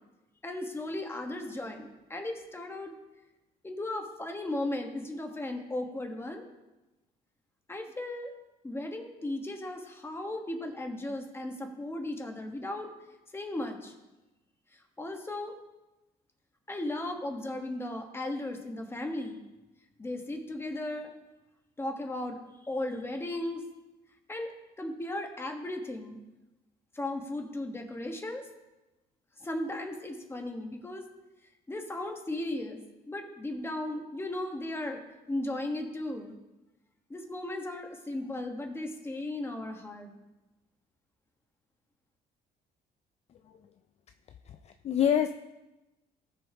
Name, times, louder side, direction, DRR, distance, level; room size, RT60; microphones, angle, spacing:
voice 1, 0.4-2.9 3.6-6.4 7.7-8.3 8.6-12.9 13.3-13.9 15.0-15.6 16.7-19.4 20.0-21.1 21.8-22.4 22.6-23.6 24.3-26.2 26.9-28.5 29.4-31.1 31.7-32.8 33.1-36.4 37.1-40.2, left 1 dB, 15° left, 3 dB, 1.4 m, -36 dB
voice 2, 44.5-45.3, left 9 dB, 40° left, 8 dB, 0.4 m, -27 dB
16.0 x 6.8 x 3.0 m, 1.0 s
cardioid pair, 110°, 17 cm